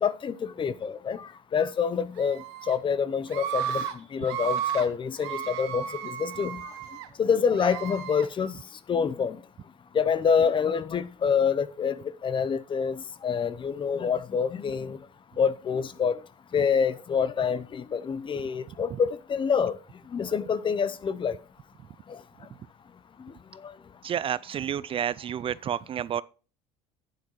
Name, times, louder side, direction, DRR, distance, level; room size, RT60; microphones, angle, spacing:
voice 1, 0.0-6.7 7.2-8.5 8.9-9.4 9.9-12.0 12.2-15.0 15.4-16.2 16.5-19.8 20.1-21.4 22.1-22.2 23.6-23.7, left 6 dB, 35° left, 0.7 m, -27 dB
Screaming, 2.2-2.7 3.3-3.9 4.2-4.9 5.2-7.1 7.5-8.3, right 9 dB, 80° right, 1.1 m, -33 dB
voice 2, 24.0-26.2, right 9 dB, 40° right, 0.4 m, -30 dB
11.5 x 9.5 x 3.1 m
supercardioid pair, 85°, 15 cm